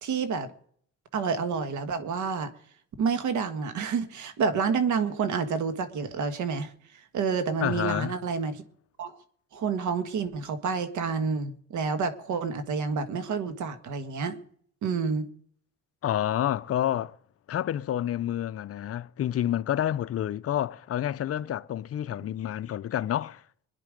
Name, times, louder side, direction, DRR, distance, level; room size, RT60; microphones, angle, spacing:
voice 1, 0.0-0.5 1.1-2.5 3.0-8.6 9.0-9.1 9.5-14.4 14.8-15.3, right 5 dB, 75° right, 1.6 m, -29 dB
voice 2, 7.6-8.1 16.0-17.1 17.5-23.4, left 11 dB, 50° left, 0.6 m, -29 dB
22.0 x 10.0 x 5.1 m
cardioid pair, 90°, 30 cm